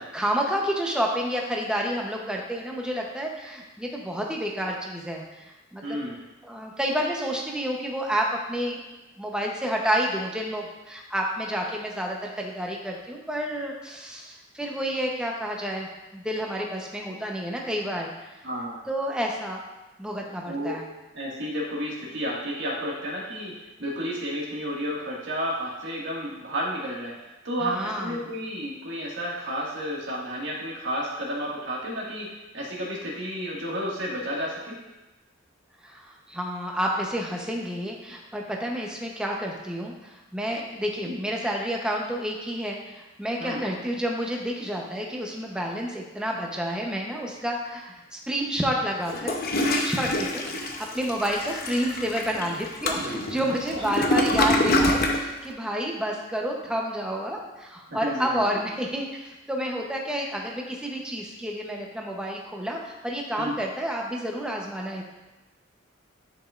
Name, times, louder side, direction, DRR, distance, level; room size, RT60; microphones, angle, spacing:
voice 1, 0.1-6.0 6.4-8.8 9.2-18.1 18.9-19.6 20.0-20.8 27.6-28.2 35.8-49.4 49.7-50.7 50.9-65.0, equal, 5° right, -1 dB, 0.8 m, -30 dB
voice 2, 5.8-6.2 18.4-18.8 20.5-20.7 21.1-27.1 27.4-34.8 41.0-41.2 43.4-43.6 53.4-53.8 57.9-58.4 63.4-63.5, equal, 65° right, -4 dB, 1.9 m, -31 dB
Toilet flush, 49.0-55.2, left 1 dB, 50° left, 0.7 m, -26 dB
10.0 x 5.3 x 2.5 m, 1.1 s
head